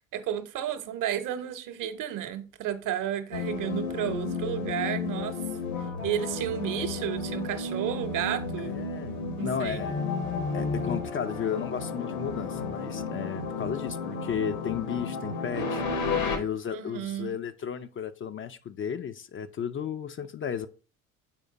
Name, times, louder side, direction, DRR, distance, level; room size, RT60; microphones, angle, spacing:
voice 1, 0.1-5.4 6.0-8.8 9.4-9.8 16.7-17.4, right 10 dB, 50° right, 0.9 m, -32 dB
sound 1, 3.3-16.4, left 4 dB, 75° left, 1.6 m, -32 dB
voice 2, 8.6-10.0 10.5-15.8 16.3-20.7, left 8 dB, 30° left, 0.5 m, -34 dB
7.3 x 4.9 x 4.0 m
figure-of-eight pair, 55°, 40 cm